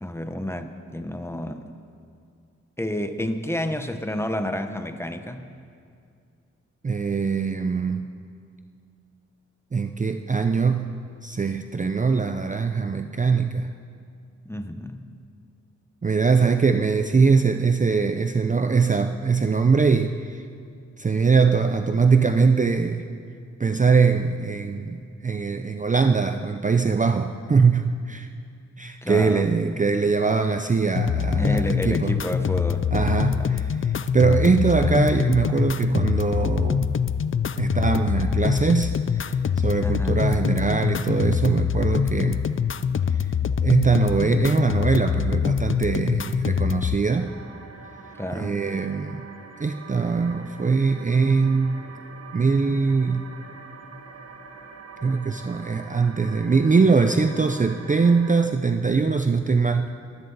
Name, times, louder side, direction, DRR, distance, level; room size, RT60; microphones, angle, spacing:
voice 1, 0.0-1.7 2.8-5.5 12.2-12.3 14.5-15.1 29.0-29.9 31.4-32.9 33.3-33.6 39.8-40.3 48.2-48.6, left 1 dB, 10° left, 8 dB, 0.8 m, -30 dB
voice 2, 6.8-8.1 9.7-11.0 11.2-13.7 16.0-20.4 21.0-23.0 23.6-28.3 28.8-32.1 32.9-37.1 37.6-42.5 43.6-47.3 48.4-49.2 49.6-51.8 52.3-53.3 55.0-59.9, right 5 dB, 25° right, 7 dB, 0.5 m, -22 dB
sound 1, 31.0-47.0, left 7 dB, 45° left, 0.4 m, -24 dB
sound 2, 47.2-58.5, right 4 dB, 55° right, 1.3 m, -44 dB
21.0 x 15.5 x 4.0 m, 2.3 s
wide cardioid pair, 140°, 29 cm